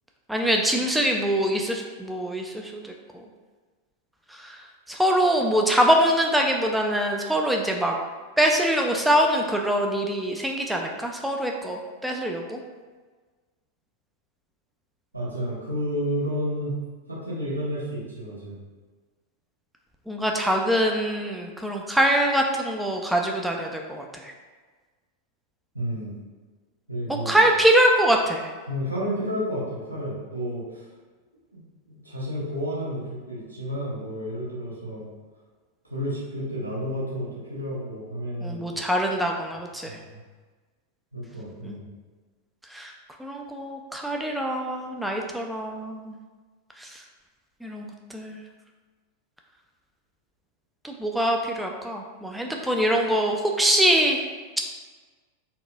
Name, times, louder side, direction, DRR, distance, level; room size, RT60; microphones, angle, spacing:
voice 1, 0.3-2.9 4.4-4.6 4.9-7.9 8.4-12.6 20.1-24.3 27.3-28.5 38.4-39.9 41.6-41.8 42.7-42.9 43.2-46.1 46.8-46.9 47.6-48.4 50.8-54.2, equal, 5° right, 1 dB, 0.3 m, -24 dB
voice 2, 15.1-16.7 17.1-18.6 25.7-26.2 26.9-27.5 28.7-30.8 31.5-35.1 35.9-38.6 39.8-40.2 41.1-41.8, equal, 85° right, -7 dB, 1.0 m, -31 dB
4.2 x 2.3 x 2.3 m, 1.4 s
figure-of-eight pair, 90°, 0 cm